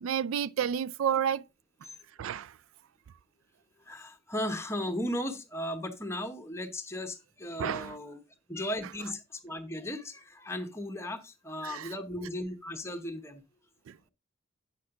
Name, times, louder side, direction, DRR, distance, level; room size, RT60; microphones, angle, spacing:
voice 1, 0.0-1.4 2.2-2.5 7.6-8.0 11.6-11.9 13.9-14.0, right 8 dB, 75° right, 0.3 m, -30 dB
voice 2, 3.9-8.2 8.5-13.4, left 1 dB, 15° left, 1.0 m, -36 dB
8.8 x 6.4 x 3.7 m
head